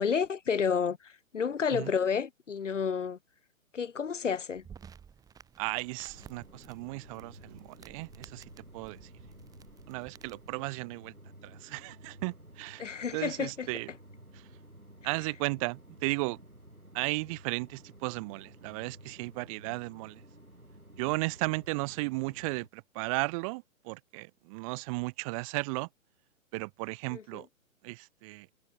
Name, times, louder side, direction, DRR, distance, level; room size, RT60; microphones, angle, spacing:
voice 1, 0.0-3.2 3.7-4.6 12.8-13.7 27.1-27.4, left 6 dB, 60° left, 2.8 m, -30 dB
sound 1, 4.6-10.6, right 7 dB, 10° right, 2.3 m, -54 dB
voice 2, 5.6-8.4 8.7-9.0 9.9-11.1 11.4-12.8 13.1-13.9 14.3-14.4 15.0-16.4 16.9-20.2 21.0-25.9 26.5-27.5 27.8-28.5, right 26 dB, 25° right, 2.0 m, -35 dB
sound 2, 6.1-22.7, right 1 dB, 90° right, 7.2 m, -53 dB
figure-of-eight pair, 125°, 42 cm